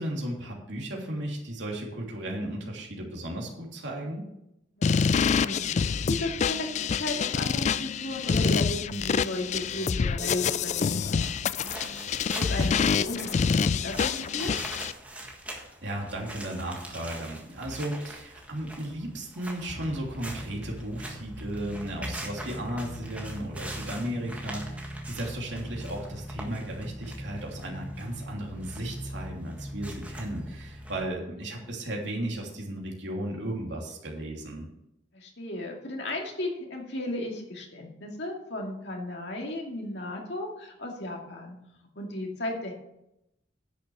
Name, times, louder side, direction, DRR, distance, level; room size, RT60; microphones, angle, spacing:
voice 1, 0.0-4.2 15.8-34.6, right 1 dB, 70° right, -1 dB, 2.9 m, -35 dB
voice 2, 4.8-11.9 12.3-14.5 35.1-41.5 42.0-42.7, left 1 dB, 65° left, 0 dB, 2.4 m, -35 dB
sound 1, 4.8-14.9, left 6 dB, 40° left, 0.3 m, -27 dB
sound 2, 11.2-31.1, equal, 10° right, 1.6 m, -40 dB
10.5 x 6.4 x 7.0 m, 0.85 s
head